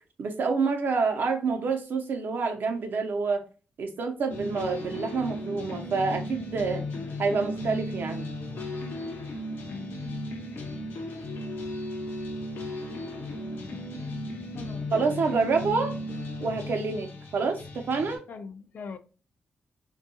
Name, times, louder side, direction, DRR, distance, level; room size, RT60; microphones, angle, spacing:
voice 1, 0.2-3.4 3.8-6.8 7.2-8.3 14.9-16.0 16.4-18.2, right 4 dB, 65° right, 0.6 m, -27 dB
sound 1, 4.3-18.2, left 1 dB, 80° left, 0.7 m, -35 dB
voice 2, 14.6-15.3 18.3-19.0, left 5 dB, 55° left, 0.3 m, -42 dB
2.6 x 2.3 x 2.6 m
wide cardioid pair, 115°, 4 cm